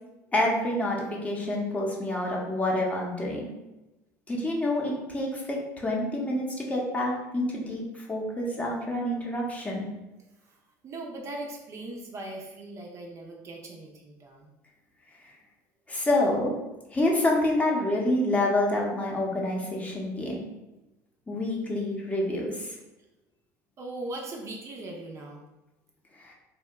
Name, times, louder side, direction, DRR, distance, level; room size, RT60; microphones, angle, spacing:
voice 1, 0.3-3.5 4.3-9.9 15.2-15.3 15.9-16.5 16.9-20.4 21.3-22.8 26.2-26.3, left 1 dB, 15° left, -2 dB, 0.7 m, -27 dB
voice 2, 10.8-14.5 23.8-25.4, right 2 dB, 40° right, 0 dB, 0.5 m, -39 dB
2.7 x 2.1 x 3.3 m, 0.98 s
supercardioid pair, 115°, 8 cm